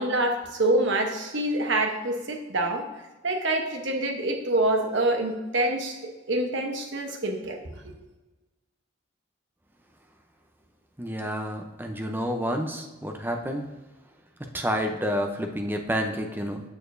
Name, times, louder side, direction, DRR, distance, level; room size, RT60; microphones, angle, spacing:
voice 1, 0.0-2.9 3.2-6.0 6.3-7.6 7.8-7.9, right 1 dB, 75° right, 3 dB, 0.9 m, -26 dB
voice 2, 11.0-13.6 14.5-16.6, equal, 10° right, 3 dB, 0.6 m, -29 dB
6.8 x 6.5 x 2.6 m, 1.2 s
head